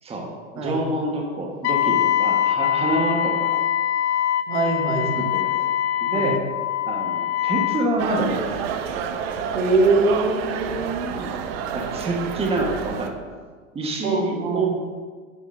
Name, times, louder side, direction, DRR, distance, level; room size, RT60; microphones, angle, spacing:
voice 1, 0.5-3.6 5.2-5.7 6.0-6.4 6.9-9.0 11.1-11.4 11.7-13.2 13.7-14.7, right 2 dB, 15° right, 0 dB, 1.5 m, -27 dB
Wind instrument woodwind instrument, 1.6-7.9, left 11 dB, 55° left, 0.6 m, -23 dB
voice 2, 4.5-5.3 6.1-6.3 9.5-11.1 14.0-14.7, right 3 dB, 70° right, 0 dB, 2.1 m, -23 dB
sound 1, 8.0-13.1, right 7 dB, 50° right, 0.9 m, -29 dB
10.5 x 8.7 x 2.7 m, 1.5 s
hypercardioid pair, 100°, 41 cm